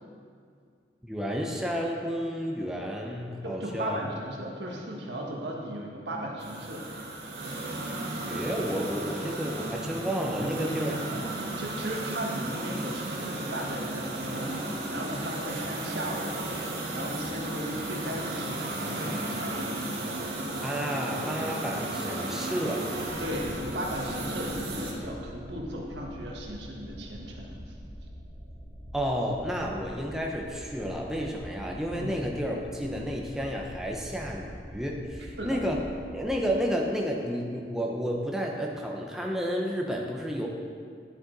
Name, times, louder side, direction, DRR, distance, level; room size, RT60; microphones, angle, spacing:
voice 1, 1.0-4.0 8.3-10.9 20.6-22.9 28.9-35.8 36.1-40.5, equal, 5° right, -1 dB, 0.7 m, -31 dB
voice 2, 3.4-6.9 10.4-16.3 16.6-19.8 23.2-27.7 32.0-32.2 35.4-35.6, right 1 dB, 85° right, -1 dB, 1.5 m, -36 dB
sound 1, 6.4-24.9, right 2 dB, 70° right, 1.7 m, -34 dB
sound 2, 23.0-36.5, equal, 50° left, 2.1 m, -45 dB
11.5 x 6.8 x 3.9 m, 2.2 s
head